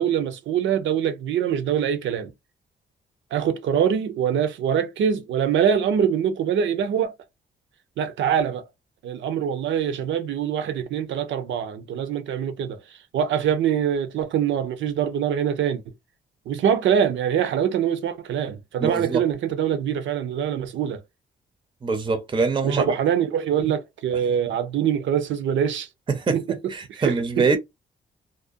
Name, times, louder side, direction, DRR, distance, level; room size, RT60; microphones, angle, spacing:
voice 1, 0.0-2.3 3.3-7.1 8.0-8.6 9.0-12.8 13.1-15.8 16.5-21.0 22.6-25.9 26.3-26.6 27.0-27.6, right 8 dB, 80° right, 0.6 m, -24 dB
voice 2, 18.8-19.2 21.8-23.0 26.1-26.4 26.7-27.6, right 4 dB, 25° right, 0.5 m, -23 dB
2.5 x 2.1 x 2.5 m
cardioid pair, 75°, 19 cm